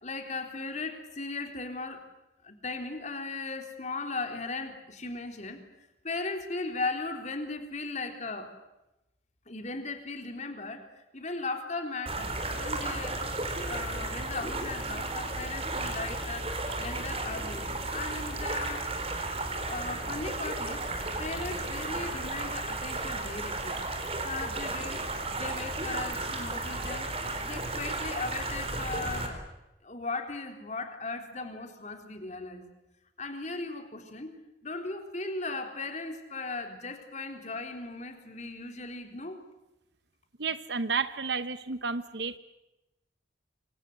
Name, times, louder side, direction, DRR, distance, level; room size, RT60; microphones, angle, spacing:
voice 1, 0.0-2.0 2.4-5.6 6.0-8.5 9.5-10.9 11.1-13.2 13.7-16.5 16.8-18.9 19.7-20.8 21.2-23.8 24.2-27.1 27.4-29.4 29.8-32.6 33.2-34.3 34.6-39.4, left 3 dB, 40° left, 5 dB, 3.7 m, -37 dB
sound 1, 12.1-29.3, right 2 dB, 35° right, 4.4 m, -34 dB
voice 2, 40.4-42.4, right 5 dB, 65° right, 12 dB, 1.0 m, -31 dB
27.0 x 25.0 x 8.0 m, 0.94 s
head